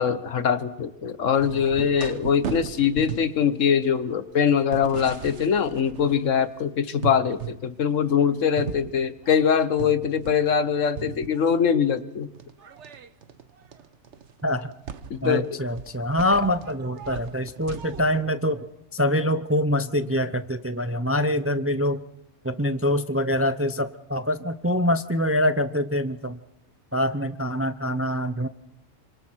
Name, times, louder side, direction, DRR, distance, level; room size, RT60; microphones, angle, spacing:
voice 1, 0.0-12.3 15.1-15.4, left 7 dB, 75° left, 12 dB, 1.4 m, -23 dB
sound 1, 1.4-6.6 7.0-7.6 8.0-10.7 11.0-11.8 12.3-18.2, right 8 dB, 65° right, 1.3 m, -38 dB
voice 2, 15.2-22.0 22.4-26.4 26.9-28.5, left 1 dB, 15° right, 11 dB, 0.5 m, -25 dB
27.0 x 25.5 x 4.6 m, 0.86 s
omnidirectional pair, 1.3 m